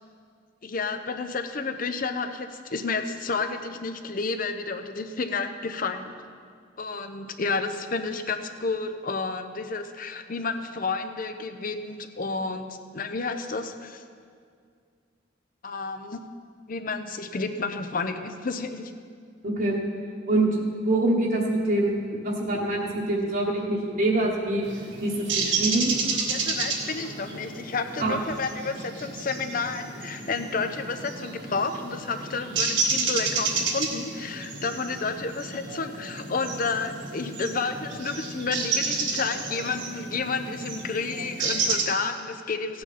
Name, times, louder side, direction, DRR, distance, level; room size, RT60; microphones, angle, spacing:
voice 1, 0.6-6.1 6.8-14.0 15.6-16.2 16.7-18.9 26.3-42.8, left 4 dB, 50° left, 8 dB, 0.7 m, -31 dB
voice 2, 19.4-19.8 20.3-24.7 25.0-25.9 28.0-28.1, right 2 dB, 50° right, -3 dB, 1.2 m, -25 dB
sound 1, 24.6-41.8, right 4 dB, 80° right, 1.6 m, -31 dB
16.0 x 8.8 x 4.2 m, 2.2 s
head